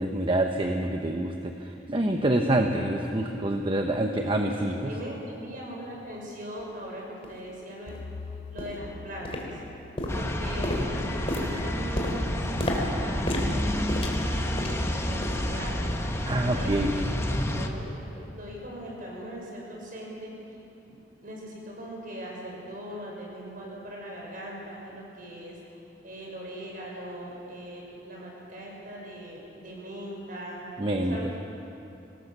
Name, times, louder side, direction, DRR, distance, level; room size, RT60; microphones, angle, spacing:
voice 1, 0.0-4.9 16.3-16.9 30.8-31.4, right 1 dB, 30° right, 3 dB, 1.0 m, -26 dB
voice 2, 4.1-4.5 4.8-8.0 8.5-9.5 10.2-15.9 16.5-20.3 20.9-30.7 31.1-31.4, equal, 50° right, -2 dB, 6.3 m, -40 dB
sound 1, 6.6-6.7 7.2-7.4 7.9-8.0 8.6-8.9 9.2-9.7 10.0-14.9 15.2-15.5 15.9-16.0 16.6-16.7, left 1 dB, 35° left, 3.2 m, -32 dB
sound 2, 7.9-11.0, left 4 dB, 75° left, 0.7 m, -44 dB
sound 3, 10.1-17.7, left 1 dB, 15° left, 1.4 m, -29 dB
25.5 x 19.5 x 6.9 m, 2.8 s
head